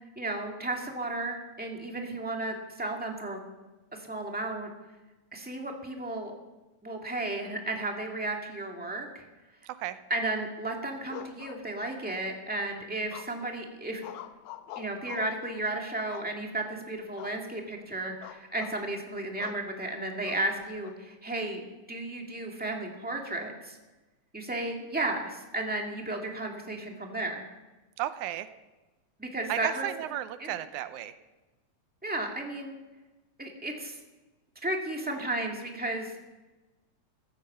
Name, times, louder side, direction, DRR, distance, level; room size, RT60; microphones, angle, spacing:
voice 1, 0.1-3.4 3.9-4.7 5.3-6.3 6.8-9.3 10.1-14.0 14.7-21.6 21.9-23.8 24.3-27.4 29.2-29.9 30.4-30.5 32.0-32.8 33.4-34.0 34.6-36.2, right 2 dB, 5° right, 1 dB, 1.4 m, -34 dB
voice 2, 9.7-10.0 28.0-28.5 29.5-31.1, right 12 dB, 90° right, 12 dB, 2.2 m, -34 dB
sound 1, 11.1-12.1 13.1-13.6 14.0-15.5 16.1-16.7 17.2-17.4 17.7-17.9 18.2-18.8 19.4-19.7 20.2-21.0, left 11 dB, 80° left, 2.1 m, -45 dB
15.5 x 13.5 x 5.6 m, 1.1 s
omnidirectional pair, 3.4 m